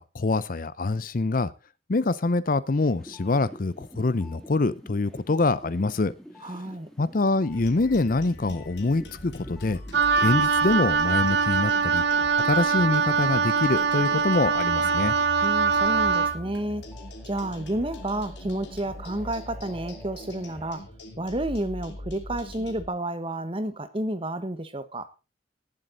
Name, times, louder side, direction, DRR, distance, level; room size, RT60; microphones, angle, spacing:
voice 1, 0.0-1.5 1.9-6.1 7.0-9.8 10.2-12.0 12.4-15.1, left 3 dB, 45° left, 0.6 m, -25 dB
sound 1, 2.8-14.0 14.4-20.8, left 1 dB, ahead, 2.3 m, -48 dB
voice 2, 6.4-6.9 15.4-16.9 17.2-20.9 21.2-25.1, right 1 dB, 30° right, 1.2 m, -31 dB
sound 2, 7.5-22.9, left 1 dB, 70° left, 2.9 m, -42 dB
Wind instrument woodwind instrument, 9.9-16.4, right 5 dB, 65° right, 0.9 m, -23 dB
18.0 x 7.6 x 3.9 m
head